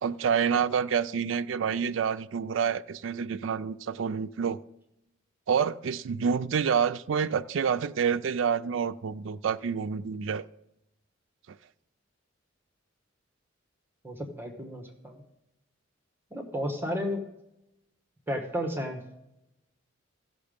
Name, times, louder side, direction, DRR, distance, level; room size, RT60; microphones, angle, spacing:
voice 1, 0.0-4.6 5.5-10.5, right 7 dB, 80° right, 0.4 m, -28 dB
voice 2, 14.0-15.2 16.3-17.2 18.3-19.0, equal, 10° right, 1.2 m, -33 dB
15.0 x 6.2 x 5.1 m
head